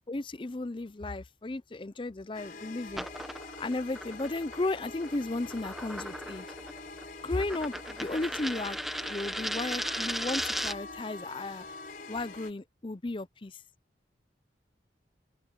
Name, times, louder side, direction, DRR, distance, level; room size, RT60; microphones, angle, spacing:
voice 1, 0.1-3.1 3.6-6.5 7.2-8.8 9.1-11.6 12.1-13.6, left 2 dB, 30° left, 0.5 m, -34 dB
sound 1, 2.3-12.5, left 3 dB, 50° left, 4.6 m, -45 dB
sound 2, 2.9-11.0, equal, ahead, 1.3 m, -37 dB
open air
head